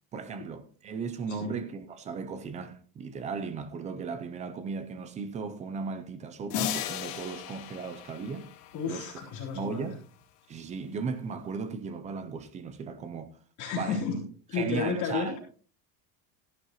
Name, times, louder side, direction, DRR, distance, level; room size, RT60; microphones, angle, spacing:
voice 1, 0.1-8.5 8.9-9.1 9.5-10.0 10.5-13.3 13.7-14.0 14.5-15.4, right 5 dB, 15° right, 0.4 m, -36 dB
sound 1, 6.5-9.3, left 10 dB, 85° left, 2.7 m, -36 dB
voice 2, 8.7-9.9 13.6-15.4, left 5 dB, 40° left, 3.8 m, -32 dB
14.5 x 11.0 x 3.0 m
cardioid pair, 165°, 46 cm